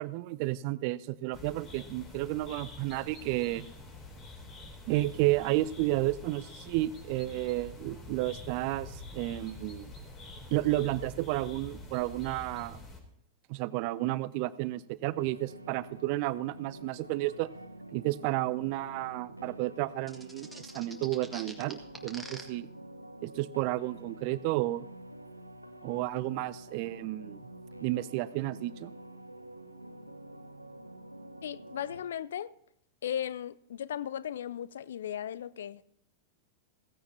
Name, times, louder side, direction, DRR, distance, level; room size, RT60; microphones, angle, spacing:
voice 1, 0.0-3.7 4.9-9.9 10.5-12.8 13.5-17.5 17.9-22.7 23.2-24.9 25.8-27.4 27.8-28.9, right 17 dB, 45° right, 0.5 m, -32 dB
sound 1, 1.3-13.0, left 2 dB, 30° left, 3.5 m, -47 dB
sound 2, 15.0-32.0, right 1 dB, 85° right, 0.9 m, -48 dB
sound 3, 20.1-22.4, equal, 5° left, 2.0 m, -44 dB
voice 2, 31.4-32.5 33.0-35.8, left 10 dB, 65° left, 0.4 m, -36 dB
16.5 x 15.0 x 2.9 m
figure-of-eight pair, 90°, 0 cm